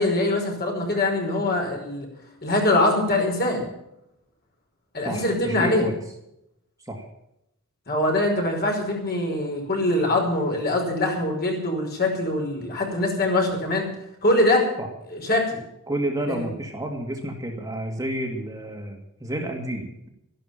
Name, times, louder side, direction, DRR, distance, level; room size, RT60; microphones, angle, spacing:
voice 1, 0.0-2.1 2.4-3.7 4.9-5.9 7.9-13.9 14.2-14.6 15.1-15.6 16.3-16.5, left 2 dB, 45° left, 0 dB, 5.4 m, -23 dB
voice 2, 5.0-6.0 6.9-7.0 14.8-14.9 15.9-20.1, right 1 dB, 15° right, 1 dB, 2.3 m, -30 dB
14.0 x 12.0 x 7.4 m, 0.81 s
head